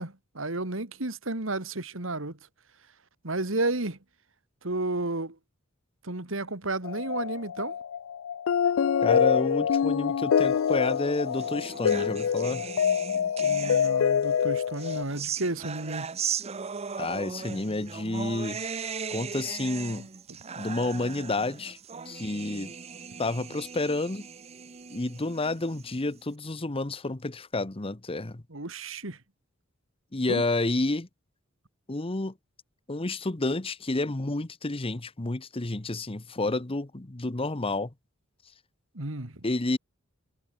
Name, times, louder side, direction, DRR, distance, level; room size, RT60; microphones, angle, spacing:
voice 1, 0.0-2.4 3.2-4.0 4.6-5.4 6.0-7.8 13.4-16.1 28.5-29.2 30.3-30.4 38.9-39.4, right 2 dB, 70° right, 2.7 m, -32 dB
sound 1, 6.8-15.0, left 7 dB, 75° left, 0.4 m, -26 dB
voice 2, 9.0-12.7 17.0-18.6 19.1-20.1 20.6-21.8 22.1-22.7 23.2-24.3 24.9-28.4 30.1-31.1 31.9-32.3 32.9-37.9 39.4-39.8, left 2 dB, 30° left, 1.0 m, -30 dB
sound 2, 10.8-14.3 14.7-26.2, right 6 dB, 30° right, 0.7 m, -38 dB
head